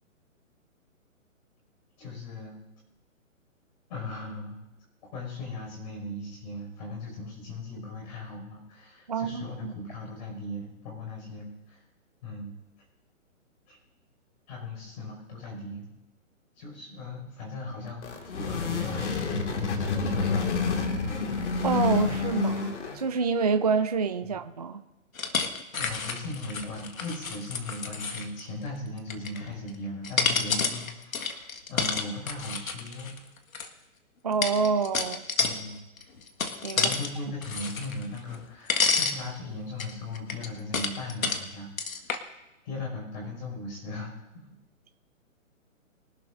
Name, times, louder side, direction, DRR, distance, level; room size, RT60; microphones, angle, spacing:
voice 1, 2.0-2.6 3.9-4.6 5.1-11.8 12.2-12.6 13.7-13.8 14.5-15.9 16.6-20.3 20.6-21.0 24.3-24.4 25.7-33.2 35.4-35.8 36.7-41.7 42.6-44.4, left 2 dB, 30° left, -1 dB, 5.7 m, -38 dB
voice 2, 9.1-9.7 21.6-24.8 34.2-35.2 36.6-36.9, right 5 dB, 30° right, 6 dB, 0.5 m, -27 dB
sound 1, 17.9-23.2, left 4 dB, 60° left, 2.1 m, -28 dB
sound 2, 25.2-28.4 29.0-29.7 30.0-33.7 34.4-35.6 36.0-37.1 37.4-38.4 38.7-39.2 39.8-41.4 41.8-42.2, left 5 dB, 90° left, 1.8 m, -29 dB
24.0 x 12.0 x 2.6 m, 0.98 s
hypercardioid pair, 165°, 41 cm